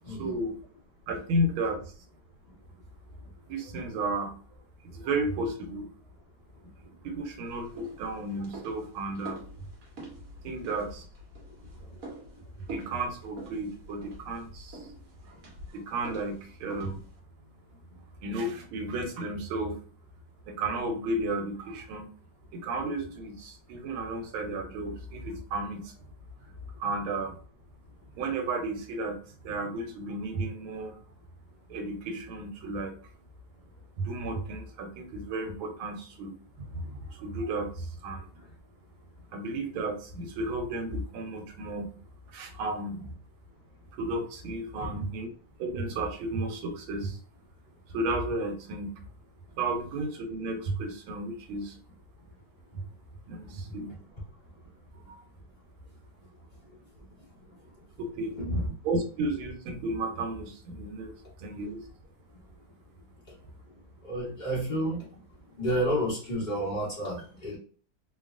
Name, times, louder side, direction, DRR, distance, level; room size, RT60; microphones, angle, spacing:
voice 1, 0.2-0.6 1.1-1.8 3.5-4.3 4.8-5.9 7.0-9.4 10.4-11.0 12.7-14.8 15.7-17.0 18.2-19.8 20.5-22.1 22.5-25.9 26.8-27.3 28.2-29.2 29.4-31.0 31.7-32.9 34.0-38.3 39.3-41.9 42.3-43.0 44.0-45.3 45.6-47.2 47.9-49.0 49.6-51.7 52.7-52.8 53.3-53.9 55.1-55.2 58.0-58.3 58.8-61.8, right 2 dB, 80° right, 4 dB, 1.5 m, -33 dB
sound 1, 7.5-17.2, right 2 dB, 50° right, 1.1 m, -46 dB
voice 2, 58.3-58.7 64.0-65.0 65.6-67.6, equal, 35° left, -6 dB, 0.8 m, -30 dB
3.4 x 2.3 x 2.4 m, 0.43 s
omnidirectional pair, 2.3 m